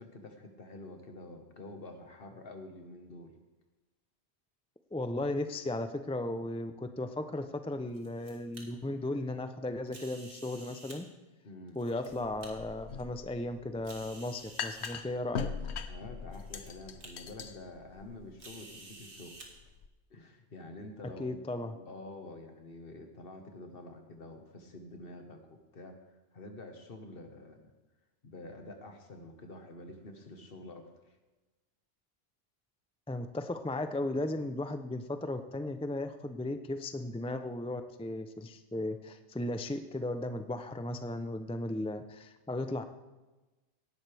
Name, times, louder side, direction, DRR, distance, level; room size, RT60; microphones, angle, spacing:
voice 1, 0.0-3.4 11.4-11.8 15.9-19.4 20.1-26.0 26.3-27.7 28.2-31.2, left 2 dB, 60° left, 5 dB, 1.6 m, -48 dB
voice 2, 4.9-11.1 11.8-15.5 21.0-21.7 33.1-42.8, left 1 dB, 10° left, 8 dB, 0.4 m, -36 dB
sound 1, 7.7-8.6 9.9-11.0 11.7-12.5 13.1-13.2 13.8-14.9 15.8-15.9 16.3-16.7 17.0-17.1 18.4-19.5, right 2 dB, 85° right, 2.1 m, -51 dB
sound 2, 12.1-19.9, left 6 dB, 80° left, 1.1 m, -42 dB
18.0 x 10.5 x 3.4 m, 1.1 s
omnidirectional pair, 1.1 m